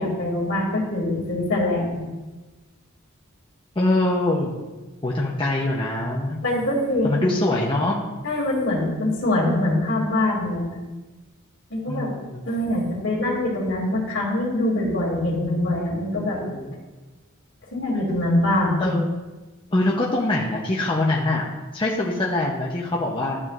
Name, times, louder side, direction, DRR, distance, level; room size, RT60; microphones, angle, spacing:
voice 1, 0.0-2.0 6.4-7.3 8.2-10.7 11.7-12.1 12.5-16.4 17.7-18.9, left 1 dB, 65° left, -2 dB, 2.5 m, -23 dB
voice 2, 3.8-4.5 5.0-6.4 7.0-8.1 11.9-12.4 16.5-16.7 18.8-19.2 19.7-21.5 21.7-23.4, left 2 dB, 25° left, -3 dB, 0.7 m, -23 dB
12.0 x 7.1 x 2.4 m, 1.2 s
head